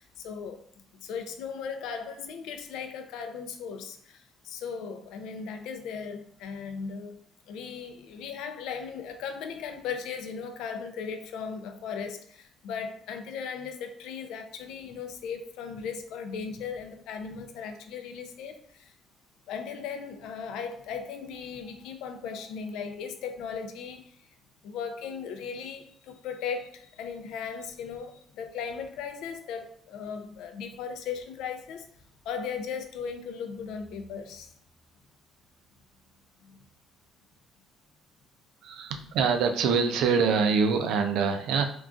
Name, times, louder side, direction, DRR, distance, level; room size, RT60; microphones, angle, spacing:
voice 1, 0.0-7.2 7.5-18.9 19.5-24.0 24.6-31.9 32.2-34.5 36.4-36.6, left 6 dB, 80° left, 7 dB, 0.4 m, -37 dB
voice 2, 38.6-41.6, right 5 dB, 75° right, 6 dB, 0.4 m, -25 dB
3.7 x 2.3 x 2.3 m, 0.63 s
cardioid pair, 135°, 0 cm